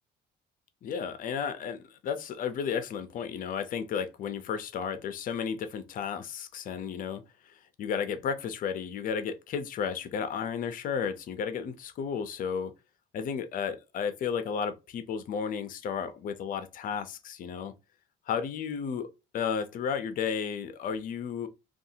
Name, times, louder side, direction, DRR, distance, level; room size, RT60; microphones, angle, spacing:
voice 1, 0.8-12.7 13.1-17.7 18.3-19.1 19.3-21.5, left 7 dB, 55° left, 0.6 m, -33 dB
2.6 x 2.4 x 2.7 m
cardioid pair, 110°, 17 cm